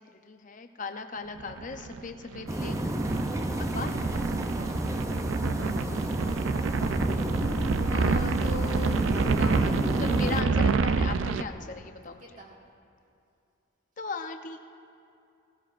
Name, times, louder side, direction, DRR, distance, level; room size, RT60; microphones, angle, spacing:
voice 1, 0.0-2.8 3.6-4.0 7.9-12.3 14.0-14.6, left 4 dB, 40° left, 6 dB, 0.7 m, -38 dB
sound 1, 1.4-11.4, right 4 dB, 70° right, 0.4 m, -28 dB
sound 2, 2.5-10.4, right 1 dB, 15° right, 0.5 m, -30 dB
voice 2, 5.5-6.4 12.2-12.6, right 1 dB, 40° right, -3 dB, 2.1 m, -51 dB
18.0 x 16.0 x 2.5 m, 2.6 s
head